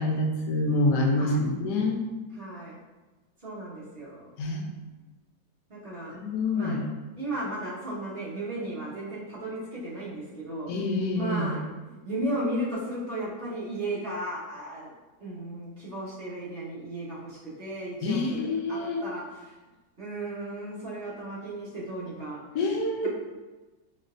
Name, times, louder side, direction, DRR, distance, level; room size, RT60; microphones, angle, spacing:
voice 1, 0.0-2.0 4.4-4.7 6.1-6.8 10.7-11.5 18.0-19.0 22.5-23.1, left 2 dB, 70° left, 0 dB, 1.1 m, -26 dB
voice 2, 1.2-1.5 2.3-2.8 3.4-4.3 5.7-6.1 6.5-6.8 7.2-10.7 11.1-14.9 15.2-19.5 20.0-22.4 23.0-23.1, right 1 dB, 35° right, -9 dB, 1.3 m, -35 dB
4.4 x 3.2 x 2.5 m, 1.2 s
omnidirectional pair, 2.0 m